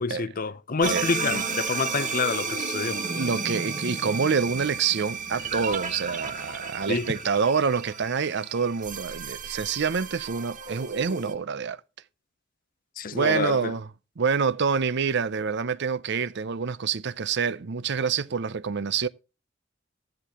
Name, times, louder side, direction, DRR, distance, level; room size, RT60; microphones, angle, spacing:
voice 1, 0.0-3.0 6.9-7.1 13.0-13.7, left 4 dB, 45° left, 0.6 m, -28 dB
sound 1, 0.8-11.3, right 4 dB, 40° right, 1.5 m, -33 dB
voice 2, 3.0-11.8 13.1-13.9 14.2-19.1, right 6 dB, 60° right, 0.6 m, -27 dB
13.5 x 10.5 x 3.0 m
head